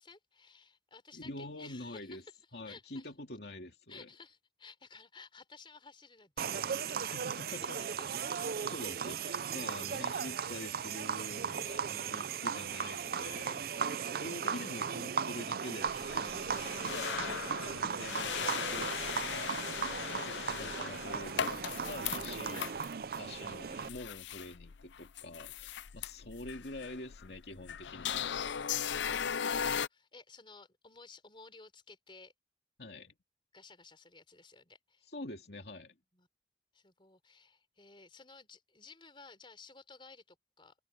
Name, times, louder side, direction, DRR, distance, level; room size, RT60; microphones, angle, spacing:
voice 1, 0.0-3.1 3.9-7.7 13.7-14.0 22.4-22.6 29.2-32.3 33.5-35.1 36.1-36.3 36.7-40.7, left 4 dB, 30° left, 4.3 m, -56 dB
voice 2, 1.1-2.2 2.5-4.1 7.0-7.8 8.2-13.6 14.1-22.7 23.2-28.6 32.8-33.1 35.1-36.0, left 2 dB, 65° left, 2.7 m, -46 dB
sound 1, 6.4-23.9, right 6 dB, 55° right, 0.5 m, -37 dB
sound 2, 15.9-29.9, left 8 dB, 90° left, 0.5 m, -38 dB
head